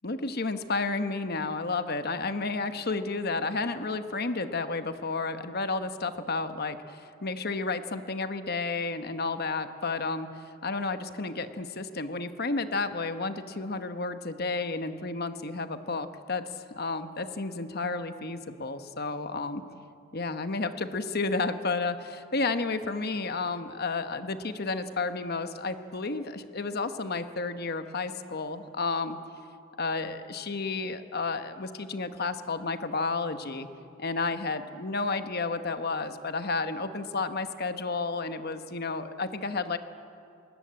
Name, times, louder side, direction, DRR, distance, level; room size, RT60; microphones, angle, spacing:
voice 1, 0.0-19.6 20.1-29.2 29.8-33.7 34.0-39.8, left 3 dB, 45° left, 9 dB, 1.1 m, -31 dB
21.5 x 19.0 x 8.7 m, 2.5 s
head